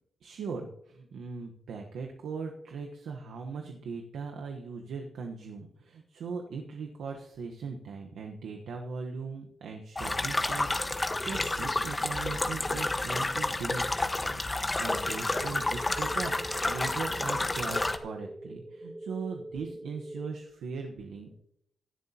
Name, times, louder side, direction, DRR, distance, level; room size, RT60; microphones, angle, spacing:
voice 1, 0.2-21.4, right 5 dB, 85° right, 2 dB, 1.1 m, -39 dB
sound 1, 10.0-18.0, left 2 dB, 25° left, 1.2 m, -30 dB
sound 2, 15.4-20.3, right 1 dB, 20° right, 2.9 m, -43 dB
17.0 x 11.0 x 2.9 m, 0.74 s
supercardioid pair, 50°, 0 cm